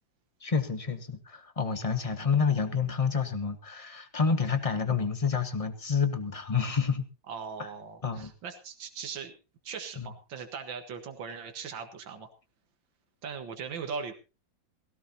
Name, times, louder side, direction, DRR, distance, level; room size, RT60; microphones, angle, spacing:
voice 1, 0.4-7.1 7.6-7.7 8.0-8.3 10.0-10.1, left 5 dB, 20° left, 9 dB, 1.3 m, -29 dB
voice 2, 7.3-9.3 9.6-12.3 13.2-14.1, right 6 dB, 90° right, 6 dB, 2.3 m, -39 dB
18.0 x 17.0 x 2.9 m, 0.30 s
omnidirectional pair, 2.0 m